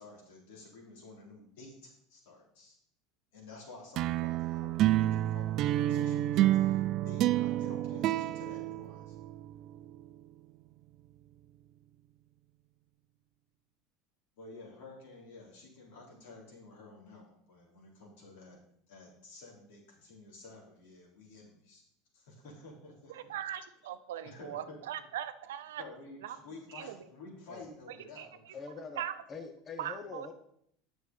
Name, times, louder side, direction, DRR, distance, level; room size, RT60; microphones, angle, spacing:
voice 1, 0.0-2.8 3.3-9.2 14.4-18.6 18.9-21.8 22.1-23.3 24.2-24.8 25.8-28.6, left 3 dB, 80° left, -2 dB, 3.5 m, -51 dB
sound 1, 4.0-9.6, right 14 dB, 50° right, 0.3 m, -29 dB
voice 2, 23.1-25.8 26.2-26.4 26.7-27.0 27.9-28.3 29.0-29.2 29.8-30.3, right 11 dB, 90° right, 11 dB, 0.6 m, -40 dB
voice 3, 28.5-30.3, left 5 dB, 30° left, 7 dB, 0.9 m, -44 dB
8.2 x 6.3 x 5.4 m, 0.71 s
supercardioid pair, 110°, 0 cm